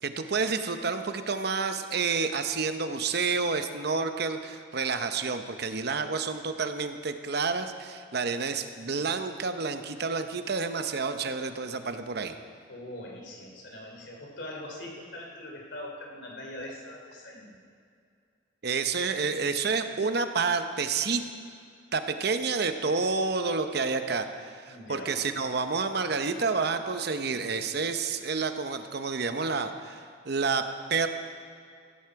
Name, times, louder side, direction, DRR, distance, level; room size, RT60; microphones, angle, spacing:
voice 1, 0.0-12.4 18.6-21.2 21.9-31.1, right 4 dB, 55° right, 8 dB, 0.8 m, -29 dB
voice 2, 12.7-17.6 24.7-25.1, left 1 dB, 65° left, 0 dB, 3.0 m, -42 dB
16.0 x 12.5 x 4.7 m, 2.3 s
head